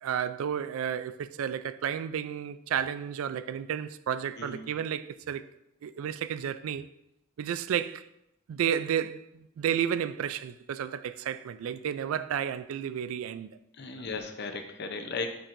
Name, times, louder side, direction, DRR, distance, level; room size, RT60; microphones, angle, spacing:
voice 1, 0.0-5.4 5.8-6.9 7.4-8.0 8.5-13.5 13.9-14.1, right 9 dB, 70° right, 0.3 m, -32 dB
voice 2, 4.4-4.7 13.8-15.3, left 4 dB, 50° left, 0.7 m, -36 dB
9.9 x 4.4 x 2.6 m
head